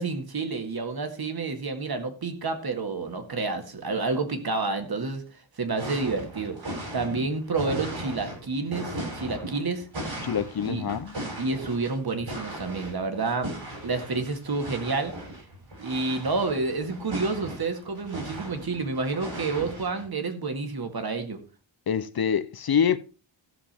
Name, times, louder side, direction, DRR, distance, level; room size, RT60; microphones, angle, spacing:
voice 1, 0.0-5.2 5.6-9.9 10.6-10.8 11.4-13.5 13.8-15.1 15.8-21.4, right 3 dB, 50° right, 2.0 m, -29 dB
sound 1, 5.8-20.1, right 1 dB, 75° right, 7.7 m, -37 dB
voice 2, 10.2-11.1 21.9-23.0, left 7 dB, 50° left, 0.6 m, -25 dB
15.0 x 7.2 x 4.4 m
wide cardioid pair, 155°, 46 cm